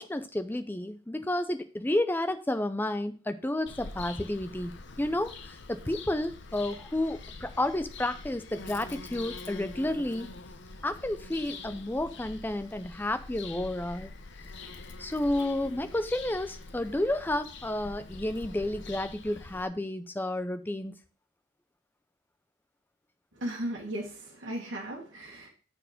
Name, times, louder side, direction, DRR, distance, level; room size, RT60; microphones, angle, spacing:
voice 1, 0.0-10.3 10.8-14.1 15.0-21.0, left 1 dB, 10° left, 10 dB, 0.4 m, -31 dB
Bird vocalization bird call bird song, 3.7-19.7, left 3 dB, 60° left, 0.7 m, -45 dB
voice 2, 23.3-25.5, right 1 dB, 60° right, -4 dB, 1.6 m, -36 dB
6.6 x 4.4 x 5.1 m, 0.37 s
head